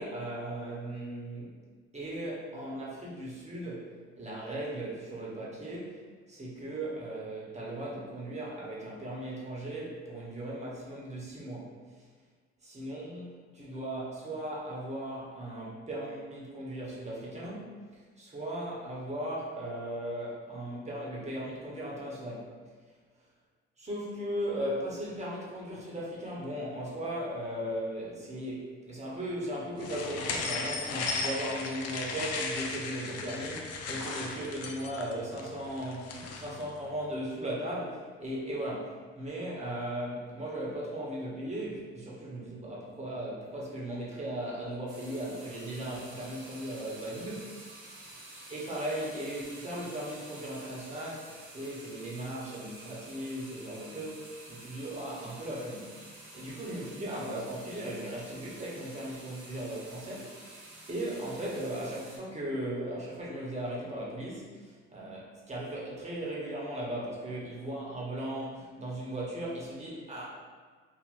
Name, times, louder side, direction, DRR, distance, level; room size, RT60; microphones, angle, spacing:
voice 1, 0.0-1.6 1.9-11.7 12.6-17.8 18.2-22.5 23.8-47.6 48.5-70.4, right 1 dB, 20° right, -6 dB, 1.1 m, -37 dB
sound 1, 29.8-36.6, left 4 dB, 55° left, 0.5 m, -36 dB
sound 2, 44.9-62.2, right 2 dB, 85° right, 0.8 m, -49 dB
3.4 x 2.4 x 2.6 m, 1.5 s
hypercardioid pair, 55°, 30 cm